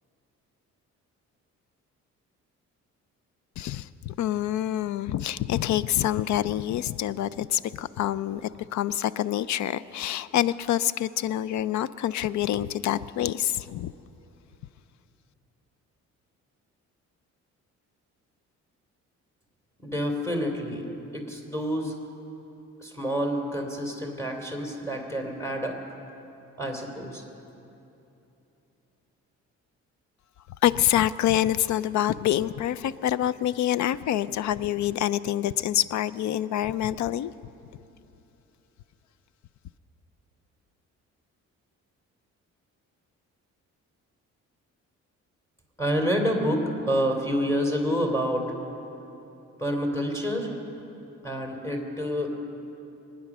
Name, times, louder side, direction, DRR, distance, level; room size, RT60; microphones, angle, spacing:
voice 1, 3.6-13.9 30.6-37.3, left 12 dB, 70° left, 18 dB, 0.5 m, -26 dB
voice 2, 19.8-20.9 21.1-21.9 22.8-25.8 26.6-27.2 45.8-48.5 49.6-50.5 51.2-52.3, equal, 10° left, 1 dB, 3.1 m, -28 dB
24.0 x 9.6 x 6.1 m, 2.9 s
cardioid pair, 90°, 30 cm